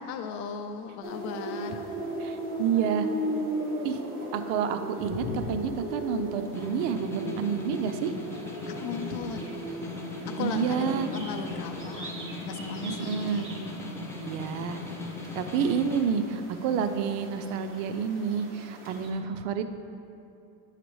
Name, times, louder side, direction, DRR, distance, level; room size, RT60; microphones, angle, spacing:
voice 1, 0.1-1.8 5.1-5.5 8.7-9.6 10.3-13.5, left 6 dB, 55° left, 7 dB, 0.7 m, -37 dB
sound 1, 1.0-19.1, right 1 dB, 25° right, 1.2 m, -37 dB
voice 2, 2.2-3.1 3.8-4.0 4.3-8.1 10.4-11.1 12.8-13.5 14.2-14.8 15.3-19.7, right 7 dB, 60° right, 9 dB, 0.6 m, -29 dB
Snare drum, 6.4-16.1, left 3 dB, 5° left, 0.4 m, -39 dB
9.3 x 6.6 x 3.1 m, 2.7 s
supercardioid pair, 130°, 46 cm